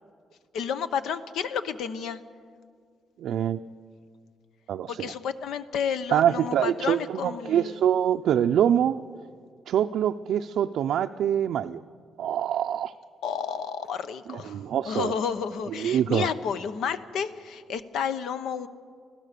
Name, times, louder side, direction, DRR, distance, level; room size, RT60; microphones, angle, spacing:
voice 1, 0.5-2.2 4.9-7.8 13.2-18.7, left 7 dB, 85° left, 12 dB, 0.9 m, -31 dB
voice 2, 3.2-3.6 4.7-5.1 6.1-9.0 9.7-11.8 12.2-12.9 14.3-15.1 15.8-16.3, right 10 dB, 75° right, 5 dB, 0.5 m, -25 dB
25.0 x 16.0 x 6.7 m, 2.1 s
cardioid pair, 135°, 0 cm